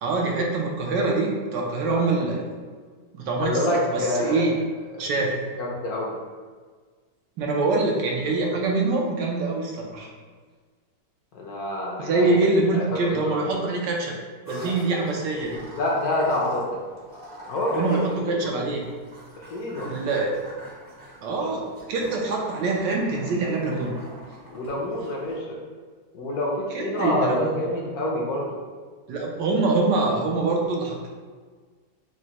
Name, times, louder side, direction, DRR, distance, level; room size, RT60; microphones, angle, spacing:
voice 1, 0.0-2.4 3.1-4.5 5.0-5.3 7.4-10.1 12.0-14.1 14.5-15.6 17.7-18.9 19.8-20.3 21.2-24.0 26.7-27.6 29.1-31.1, right 3 dB, 80° right, -1 dB, 1.3 m, -24 dB
voice 2, 1.8-2.1 3.4-4.5 4.9-5.1 5.6-6.2 11.3-12.4 12.7-13.5 15.7-16.8 17.5-18.5 19.4-19.9 24.5-25.6 26.1-28.6, left 1 dB, 65° left, -2 dB, 1.0 m, -27 dB
sound 1, 14.4-25.3, right 1 dB, 25° right, 0.5 m, -43 dB
6.1 x 2.1 x 2.8 m, 1.5 s
omnidirectional pair, 2.0 m